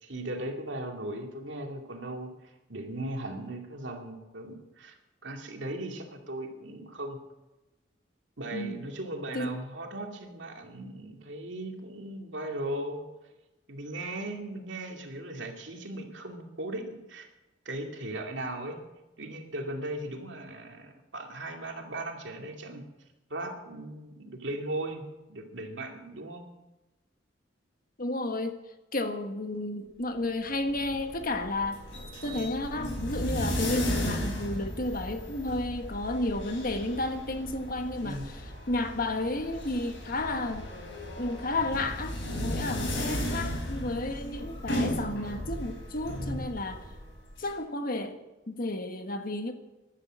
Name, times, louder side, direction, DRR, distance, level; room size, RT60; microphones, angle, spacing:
voice 1, 0.0-5.0 5.2-7.2 8.4-13.1 13.7-17.3 17.7-18.8 19.2-22.8 23.3-25.0 25.3-26.4 38.0-38.3, right 1 dB, 70° right, 3 dB, 2.4 m, -37 dB
voice 2, 28.0-28.6 28.9-31.8 32.2-38.2 38.7-40.7 41.2-46.8 47.4-48.2 48.5-49.5, left 2 dB, 50° left, 7 dB, 1.5 m, -32 dB
sound 1, 30.5-47.5, equal, 70° left, 5.1 m, -35 dB
14.0 x 11.5 x 6.2 m, 1.0 s
head